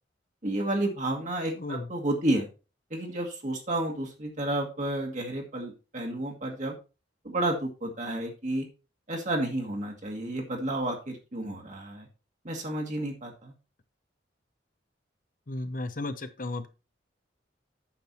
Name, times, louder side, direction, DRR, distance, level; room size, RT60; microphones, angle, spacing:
voice 1, 0.4-2.5 2.9-6.8 7.2-8.7 9.1-12.1 12.4-13.5, right 1 dB, 40° right, 1 dB, 1.7 m, -31 dB
voice 2, 1.6-1.9 15.5-16.7, left 2 dB, 45° left, 10 dB, 0.9 m, -34 dB
8.8 x 6.0 x 4.3 m, 0.32 s
head